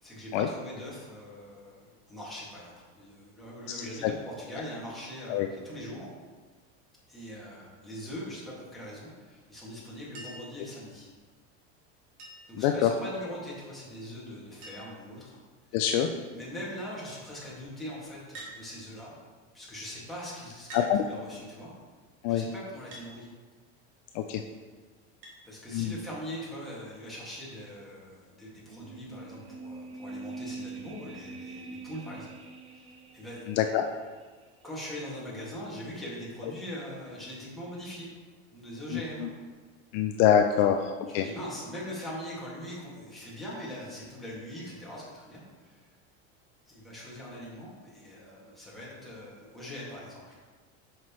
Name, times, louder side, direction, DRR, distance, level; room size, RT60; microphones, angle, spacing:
voice 1, 0.0-6.1 7.1-11.1 12.5-15.4 15.9-19.1 19.5-21.7 22.3-23.3 25.4-32.3 32.7-32.9 33.1-33.5 34.6-38.1 38.5-39.3 40.5-40.7 41.1-45.8 46.7-50.4, equal, ahead, -8 dB, 1.9 m, -41 dB
voice 2, 3.8-4.1 5.3-5.5 12.6-12.9 15.7-16.1 20.7-21.0 22.2-22.4 24.1-24.4 25.7-25.9 33.5-33.8 38.9-39.3 39.9-41.3, left 10 dB, 55° left, 5 dB, 0.5 m, -25 dB
Chink clink, 10.1-10.6 12.2-12.6 14.0-14.1 14.3-14.4 14.6-15.1 15.8-16.2 18.3-18.6 19.6-19.7 20.7-20.9 22.9-23.1 25.2-25.4 26.8-26.9, right 1 dB, 70° right, 1.9 m, -45 dB
sound 1, 28.7-34.0 34.2-34.3, right 3 dB, 20° right, 0.4 m, -44 dB
7.4 x 5.8 x 3.1 m, 1.4 s
supercardioid pair, 150°, 33 cm